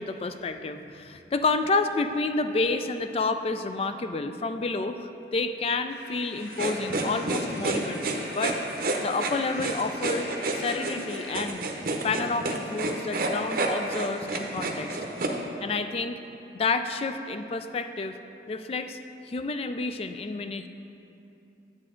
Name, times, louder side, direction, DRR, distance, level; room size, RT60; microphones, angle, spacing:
voice 1, 0.0-8.6 9.0-11.6 12.0-15.0 15.6-16.2 16.5-18.2 18.5-19.0 19.3-20.7, left 3 dB, 35° left, 9 dB, 0.3 m, -29 dB
sound 1, 5.9-11.5, left 1 dB, 65° left, 1.1 m, -44 dB
sound 2, 6.5-15.3, right 2 dB, 55° right, 0.7 m, -29 dB
8.8 x 7.5 x 3.7 m, 2.9 s
head